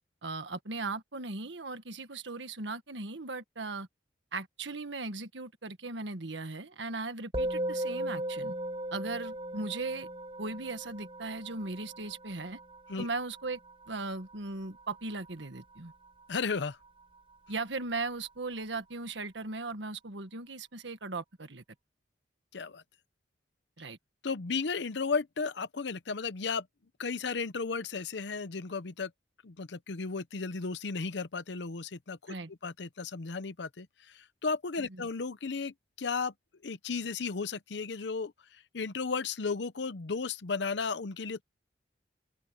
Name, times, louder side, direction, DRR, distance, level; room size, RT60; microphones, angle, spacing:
voice 1, 0.2-3.9 4.3-8.5 8.9-10.1 10.4-12.6 13.0-13.6 13.9-15.9 17.5-21.6 23.8-24.0 32.3-32.5, right 3 dB, 80° right, 1.6 m, -38 dB
Musical instrument, 7.3-16.9, right 1 dB, 30° right, 4.5 m, -38 dB
voice 2, 16.3-16.8 22.5-22.8 24.2-26.7 27.0-29.1 29.4-36.3 36.6-41.4, left 4 dB, 70° left, 0.7 m, -34 dB
open air
head